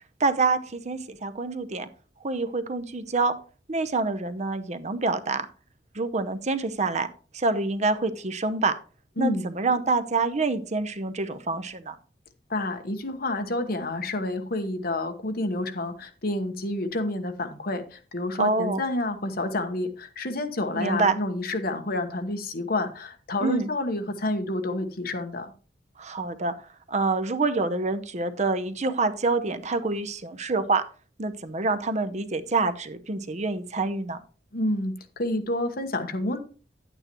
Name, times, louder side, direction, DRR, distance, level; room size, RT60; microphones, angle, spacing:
voice 1, 0.2-1.9 2.2-3.3 3.7-5.5 5.9-7.1 7.3-8.8 9.2-11.9 18.4-18.8 20.7-21.2 23.4-23.7 26.0-26.5 26.9-30.8 31.2-34.2, right 3 dB, 40° right, 11 dB, 0.8 m, -26 dB
voice 2, 9.2-9.5 12.5-25.5 34.5-36.4, left 2 dB, 55° left, 7 dB, 1.2 m, -29 dB
10.5 x 9.0 x 3.0 m, 0.38 s
head